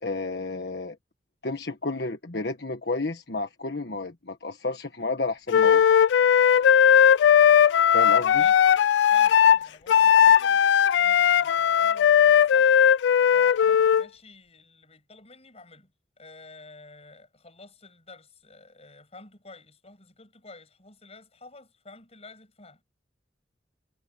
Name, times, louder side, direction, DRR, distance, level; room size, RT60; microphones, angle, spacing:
voice 1, 0.0-1.0 1.4-5.8 7.9-8.4, left 3 dB, 65° left, 1.5 m, -31 dB
Wind instrument woodwind instrument, 5.5-14.0, left 8 dB, 80° left, 0.3 m, -18 dB
voice 2, 9.1-10.6 10.9-12.8 13.3-22.8, left 3 dB, 35° left, 6.4 m, -50 dB
head